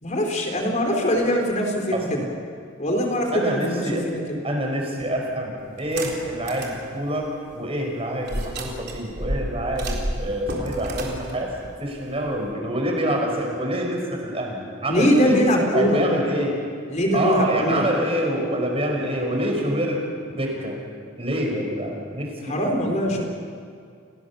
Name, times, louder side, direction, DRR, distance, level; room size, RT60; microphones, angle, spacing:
voice 1, 0.0-2.2 2.8-4.4 14.9-16.0 16.9-17.9 22.4-23.2, equal, 35° left, 2 dB, 4.2 m, -22 dB
voice 2, 3.3-4.0 4.4-11.5 11.8-15.4 15.7-16.6 17.1-20.0 20.3-20.8 21.2-22.6 22.9-23.2, right 1 dB, 30° right, 1 dB, 5.2 m, -26 dB
sound 1, 5.8-6.8 7.2-7.3 8.2-12.5, right 1 dB, 55° right, 3.9 m, -31 dB
29.5 x 18.5 x 7.1 m, 2.3 s
head